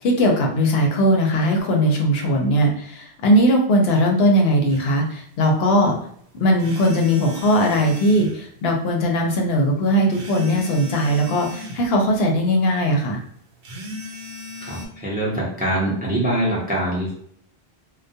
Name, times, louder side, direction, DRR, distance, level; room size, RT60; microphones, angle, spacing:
voice 1, 0.0-6.0 6.3-13.2, equal, 75° left, 1 dB, 0.8 m, -19 dB
sound 1, 4.7-4.8 6.6-8.4 10.1-11.9 13.6-14.9, left 1 dB, 65° right, 0.7 m, -36 dB
voice 2, 14.6-17.1, right 1 dB, 10° right, -5 dB, 0.5 m, -24 dB
2.2 x 2.0 x 2.6 m, 0.65 s
omnidirectional pair, 1.1 m